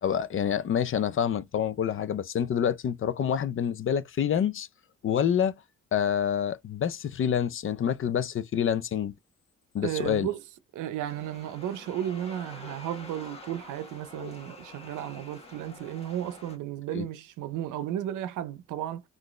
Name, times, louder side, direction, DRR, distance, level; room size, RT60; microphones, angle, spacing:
voice 1, 0.0-4.7 5.0-5.5 5.9-9.2 9.7-10.3 16.9-17.1, left 8 dB, 45° left, 0.5 m, -27 dB
voice 2, 9.8-10.4 10.7-19.0, right 11 dB, 85° right, 0.7 m, -34 dB
sound 1, 11.0-16.6, left 2 dB, 20° left, 1.4 m, -47 dB
3.9 x 2.6 x 3.1 m
cardioid pair, 90°, 30 cm